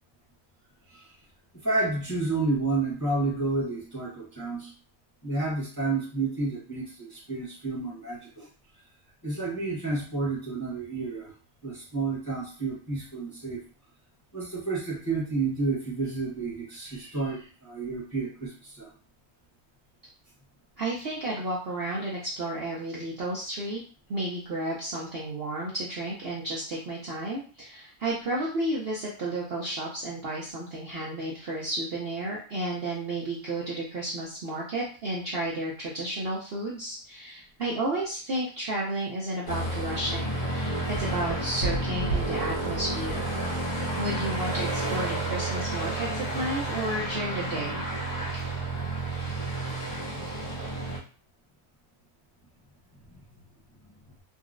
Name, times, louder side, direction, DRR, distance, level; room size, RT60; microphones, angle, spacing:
voice 1, 1.6-4.7 5.2-8.5 9.2-11.3 11.6-13.6 14.3-18.9, right 3 dB, 15° left, -6 dB, 0.8 m, -30 dB
voice 2, 20.8-23.8 24.1-43.3 44.0-48.1, right 1 dB, 55° right, -5 dB, 0.7 m, -32 dB
Aircraft, 39.5-51.0, right 2 dB, 80° left, 1.7 m, -30 dB
3.7 x 2.1 x 2.5 m, 0.38 s
omnidirectional pair, 1.6 m